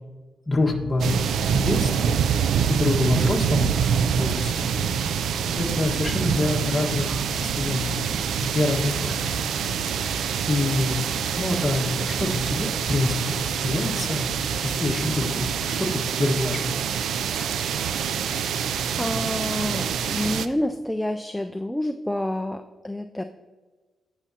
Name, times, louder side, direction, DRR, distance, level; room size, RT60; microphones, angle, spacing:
voice 1, 0.5-1.1 1.5-2.1 2.7-3.7 4.2-4.7 5.6-7.9 8.4-9.3 9.8-10.1 10.5-11.0 11.4-14.2 14.6-15.5 15.8-16.6, left 2 dB, 20° left, 0 dB, 1.5 m, -26 dB
sound 1, 0.7-15.7, right 1 dB, 20° right, 2.7 m, -39 dB
sound 2, 1.0-20.5, right 8 dB, 90° right, 0.4 m, -26 dB
voice 2, 18.2-23.2, left 1 dB, 5° left, 6 dB, 0.3 m, -29 dB
17.0 x 5.9 x 2.8 m, 1.3 s
cardioid pair, 110°, 0 cm